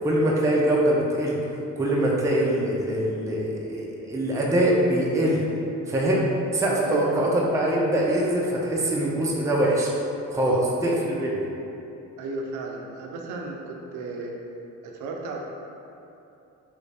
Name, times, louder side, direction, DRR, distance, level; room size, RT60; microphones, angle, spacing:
voice 1, 0.0-1.4 1.8-5.4 5.9-6.2 6.5-9.9 10.3-10.6 10.8-11.3, right 1 dB, 10° right, -4 dB, 0.5 m, -23 dB
voice 2, 6.8-7.3 10.4-10.7 12.2-14.3 14.8-15.4, right 4 dB, 75° right, 0 dB, 0.5 m, -33 dB
3.1 x 2.5 x 3.3 m, 2.8 s
cardioid pair, 90°, 30 cm